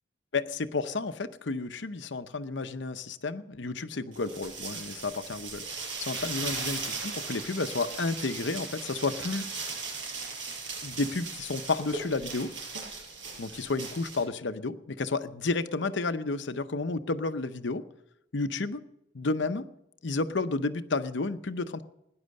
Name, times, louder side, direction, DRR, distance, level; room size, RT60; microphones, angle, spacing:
voice 1, 0.3-5.6 6.0-9.5 10.8-12.5 13.4-17.8 18.3-18.8 19.1-19.6 20.0-21.8, left 3 dB, 70° left, 10 dB, 0.8 m, -31 dB
sound 1, 4.1-14.2, right 4 dB, 80° right, 5.5 m, -38 dB
17.5 x 10.5 x 6.5 m, 0.84 s
head